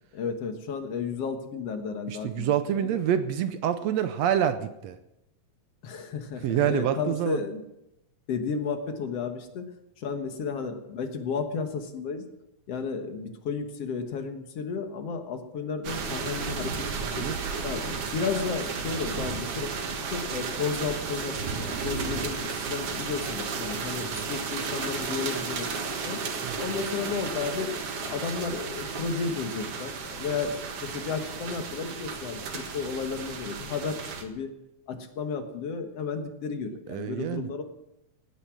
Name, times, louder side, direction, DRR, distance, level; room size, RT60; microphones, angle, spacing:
voice 1, 0.1-3.0 5.8-7.6 8.3-12.3 12.7-17.2 17.6-19.7 20.1-25.7 26.0-26.2 26.6-34.5 34.9-37.6, left 5 dB, 60° left, 7 dB, 2.3 m, -33 dB
voice 2, 2.1-5.0 6.4-7.4 17.2-17.4 22.1-22.3 24.0-24.3 26.4-26.6 36.9-37.5, right 10 dB, 75° right, 10 dB, 1.7 m, -27 dB
sound 1, 15.8-34.2, right 5 dB, 55° right, 2.3 m, -33 dB
16.5 x 10.0 x 6.2 m, 0.86 s
omnidirectional pair, 3.4 m